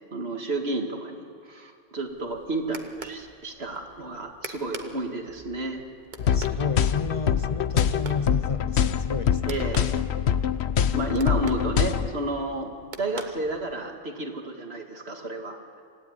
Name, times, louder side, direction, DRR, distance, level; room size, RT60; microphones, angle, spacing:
voice 1, 0.1-5.8 9.4-9.9 10.9-15.6, right 2 dB, 75° right, 3 dB, 2.5 m, -31 dB
sound 1, 2.0-14.0, right 3 dB, 45° right, 1.3 m, -45 dB
sound 2, 6.2-12.1, left 8 dB, 85° left, 1.1 m, -24 dB
voice 2, 6.2-9.6, left 5 dB, 40° left, 11 dB, 0.6 m, -32 dB
26.0 x 15.5 x 9.7 m, 2.3 s
omnidirectional pair, 1.1 m